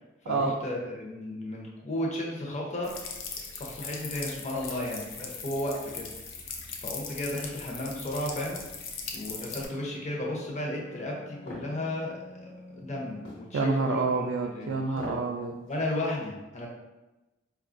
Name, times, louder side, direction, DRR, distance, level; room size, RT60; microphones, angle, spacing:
voice 1, 0.3-2.9 3.4-6.1 6.8-8.6 9.1-12.1 12.4-14.0 14.5-15.2 15.7-16.7, left 1 dB, 40° left, -2 dB, 0.7 m, -34 dB
sound 1, 2.8-9.7, left 5 dB, 90° left, 0.5 m, -40 dB
Wind instrument woodwind instrument, 9.3-14.7, left 1 dB, 10° right, 0.4 m, -51 dB
sound 2, 11.5-11.7 13.2-13.5 14.9-15.3 15.7-15.8, left 1 dB, 60° left, 1.0 m, -40 dB
voice 2, 13.5-15.5, right 4 dB, 85° right, 0 dB, 0.3 m, -28 dB
4.3 x 2.3 x 2.5 m, 1.1 s
head